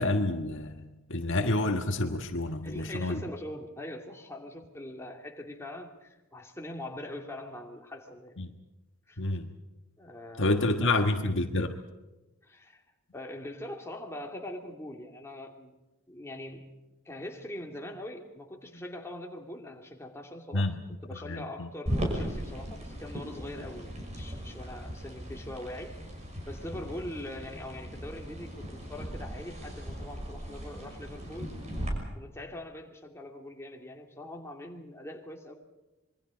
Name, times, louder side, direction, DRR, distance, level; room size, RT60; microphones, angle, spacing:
voice 1, 0.0-3.2 8.4-8.5 9.2-9.5 10.4-11.8 20.5-20.8 21.1-21.7, left 2 dB, 55° left, 5 dB, 1.6 m, -28 dB
voice 2, 2.6-8.4 9.1-9.2 10.0-10.9 12.4-12.8 13.1-15.7 16.1-16.7 17.0-20.7 21.0-26.1 26.5-31.5 32.1-35.5, left 1 dB, 10° left, 1 dB, 2.6 m, -42 dB
sound 1, 21.9-31.9, equal, 30° right, 6.0 m, -38 dB
26.5 x 23.0 x 5.2 m, 1.1 s
head